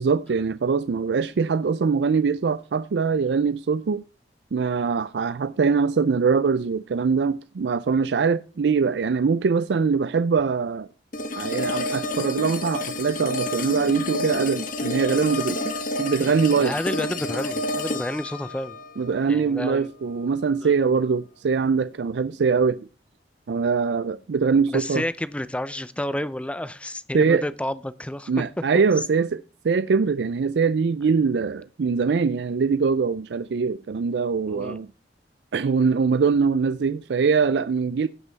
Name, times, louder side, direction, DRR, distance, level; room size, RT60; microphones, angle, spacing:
voice 1, 0.0-4.0 4.5-10.9 11.4-15.7 16.0-16.7 19.0-22.9 23.5-25.0 27.1-27.4 28.3-34.9 35.5-38.1, right 5 dB, 75° right, 0.4 m, -23 dB
sound 1, 11.1-20.2, left 2 dB, 50° left, 1.3 m, -30 dB
voice 2, 16.6-18.8 19.3-19.9 20.6-20.7 24.7-28.4 34.5-34.8, left 1 dB, 5° left, 0.6 m, -30 dB
16.5 x 5.5 x 4.0 m
head